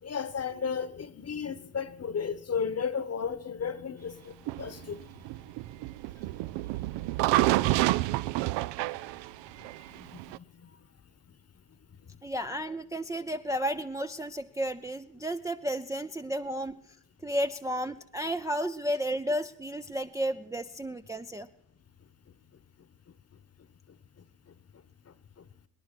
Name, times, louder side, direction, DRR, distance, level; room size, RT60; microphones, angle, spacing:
voice 1, 0.0-5.3 9.9-10.7 23.9-24.2 25.1-25.5, left 6 dB, 35° left, 1.1 m, -35 dB
sound 1, 4.5-10.4, right 17 dB, 70° right, 0.5 m, -28 dB
voice 2, 12.2-16.8 17.2-21.5, equal, 5° right, 0.5 m, -32 dB
20.5 x 10.0 x 6.0 m
hypercardioid pair, 50°, 44 cm